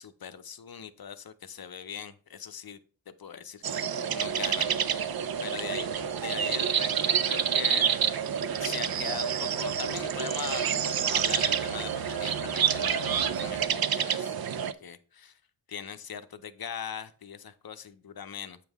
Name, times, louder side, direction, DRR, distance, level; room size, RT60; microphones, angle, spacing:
voice 1, 0.0-2.8 3.1-5.9 6.1-7.9 8.6-15.4 15.7-18.6, left 7 dB, 50° left, 12 dB, 0.6 m, -40 dB
sound 1, 3.6-14.7, right 8 dB, 50° right, 0.5 m, -28 dB
sound 2, 4.1-13.7, right 6 dB, 85° right, 1.0 m, -43 dB
8.4 x 5.4 x 3.5 m, 0.41 s
wide cardioid pair, 95°, 49 cm